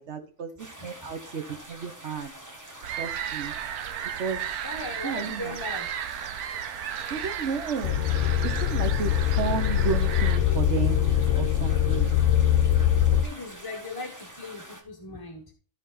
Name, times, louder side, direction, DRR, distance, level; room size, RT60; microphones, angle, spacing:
voice 1, 0.0-2.3 3.0-3.5 4.2-4.4 5.0-5.6 7.1-8.0 8.4-12.1, right 6 dB, 50° right, 8 dB, 1.2 m, -32 dB
sound 1, 0.6-14.8, right 1 dB, 15° right, 1.1 m, -45 dB
voice 2, 0.8-1.1 4.6-5.9 7.0-7.2 13.1-15.5, left 2 dB, 20° left, 1 dB, 0.8 m, -39 dB
sound 2, 2.8-10.4, right 9 dB, 75° right, 1.2 m, -34 dB
sound 3, 7.8-13.2, left 10 dB, 65° left, 0.9 m, -23 dB
13.0 x 4.9 x 3.9 m, 0.41 s
omnidirectional pair, 1.6 m